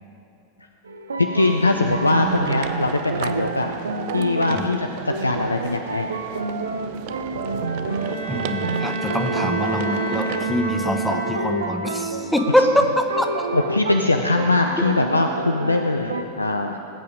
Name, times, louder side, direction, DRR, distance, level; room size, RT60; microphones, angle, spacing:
sound 1, 0.9-16.2, right 3 dB, 70° right, 0.8 m, -29 dB
voice 1, 1.2-3.7 4.1-6.1 13.5-16.8, left 2 dB, 80° left, 5 dB, 0.5 m, -21 dB
sound 2, 1.4-10.5, right 11 dB, 50° right, 0.5 m, -36 dB
Bowed string instrument, 7.8-11.8, right 2 dB, 65° left, 4.0 m, -30 dB
voice 2, 8.3-12.6 13.0-13.3, left 1 dB, ahead, 4 dB, 1.0 m, -24 dB
20.5 x 8.4 x 5.0 m, 2.8 s
figure-of-eight pair, 90°, 0 cm